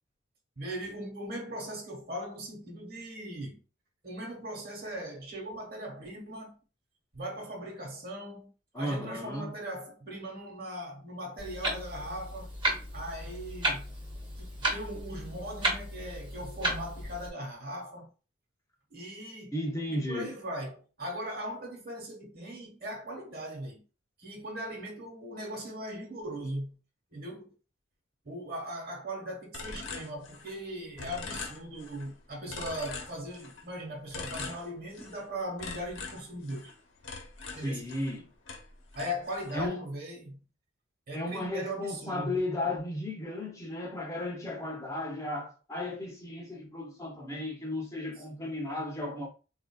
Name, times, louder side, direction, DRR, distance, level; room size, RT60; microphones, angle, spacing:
voice 1, 0.6-3.6 4.0-6.5 7.1-8.5 8.7-12.5 12.9-13.9 14.4-18.1 18.9-19.5 19.9-23.8 24.2-26.8 27.1-27.5 28.2-36.7 37.5-37.9 38.9-40.4 41.1-42.4, equal, 50° right, 1.0 m, -39 dB
voice 2, 8.7-9.5 19.5-20.4 37.6-38.3 39.5-39.8 41.1-49.3, left 1 dB, 15° left, 0.5 m, -34 dB
Clock, 11.4-17.3, right 1 dB, 25° right, 0.7 m, -34 dB
sound 1, 29.5-30.7 31.0-32.1 32.5-33.7 34.1-35.2 35.6-38.2 38.5-39.6, left 4 dB, 80° left, 0.8 m, -42 dB
3.7 x 2.4 x 2.2 m
head